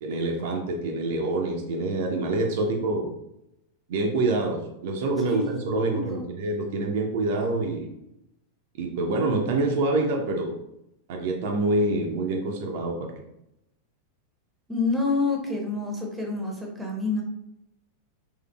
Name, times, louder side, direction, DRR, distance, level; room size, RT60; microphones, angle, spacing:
voice 1, 0.0-3.1 3.9-7.9 8.8-10.5 11.1-13.1, right 2 dB, 50° right, 1 dB, 0.5 m, -26 dB
voice 2, 5.3-6.3 14.7-17.2, left 3 dB, 5° right, 0 dB, 0.9 m, -28 dB
3.6 x 3.1 x 2.3 m, 0.83 s
figure-of-eight pair, 90°, 0 cm